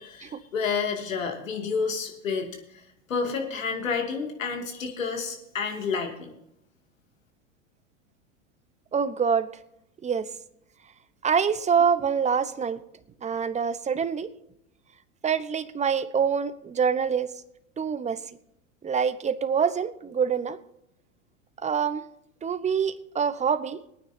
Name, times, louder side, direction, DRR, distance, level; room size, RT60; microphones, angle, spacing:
voice 1, 0.0-6.4, left 5 dB, 85° left, 3 dB, 2.5 m, -30 dB
voice 2, 8.9-9.5 10.0-10.3 11.2-12.8 13.2-14.3 15.2-17.3 17.8-18.2 18.8-20.6 21.6-22.0 22.4-23.8, right 6 dB, 20° right, 12 dB, 0.9 m, -25 dB
22.5 x 9.5 x 2.8 m, 0.82 s
hypercardioid pair, 100°, 38 cm